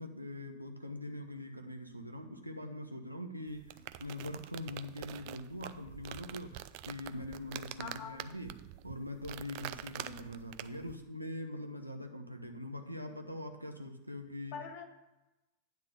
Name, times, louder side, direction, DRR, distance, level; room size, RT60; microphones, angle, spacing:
voice 1, 0.0-8.5 8.8-14.6, left 1 dB, 85° right, 5 dB, 0.8 m, -43 dB
sound 1, 3.5-10.9, right 14 dB, 45° right, 0.3 m, -46 dB
voice 2, 7.8-8.2 10.0-10.3 14.5-14.8, left 6 dB, 45° left, 7 dB, 1.0 m, -44 dB
9.3 x 3.8 x 7.1 m, 0.99 s
figure-of-eight pair, 90°, 0 cm